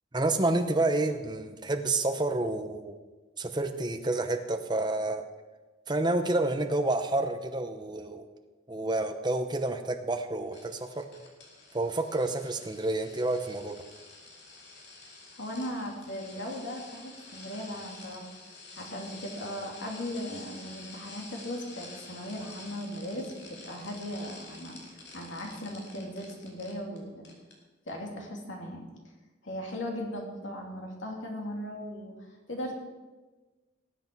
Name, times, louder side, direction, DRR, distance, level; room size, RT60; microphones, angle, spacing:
voice 1, 0.1-2.9 3.4-5.2 5.9-8.3 8.7-11.0 11.7-13.7, right 2 dB, 20° right, 6 dB, 0.8 m, -29 dB
sound 1, 10.5-27.0 27.2-27.5 27.9-28.0, left 3 dB, 60° left, 2.6 m, -49 dB
voice 2, 15.3-18.3 18.8-24.8 25.1-27.2 27.9-28.9 29.4-32.7, equal, 75° left, 0 dB, 2.7 m, -38 dB
19.0 x 8.1 x 4.6 m, 1.2 s
head